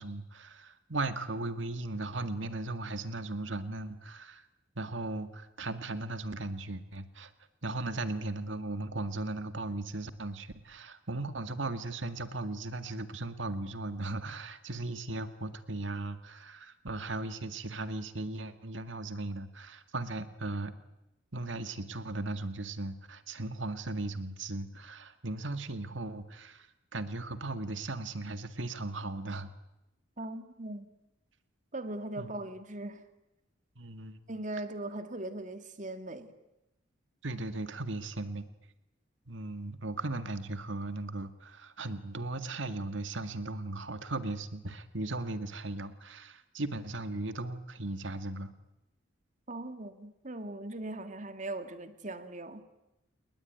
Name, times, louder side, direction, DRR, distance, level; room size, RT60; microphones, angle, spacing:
voice 1, 0.0-4.4 4.8-7.3 7.6-20.7 21.3-29.5 32.2-32.3 33.8-34.2 37.2-38.5 39.3-48.5, right 2 dB, 70° right, 10 dB, 2.0 m, -37 dB
voice 2, 30.2-30.9 31.7-33.0 34.3-36.3 49.5-52.6, right 2 dB, 40° right, 9 dB, 2.2 m, -39 dB
29.5 x 20.5 x 9.4 m, 0.93 s
head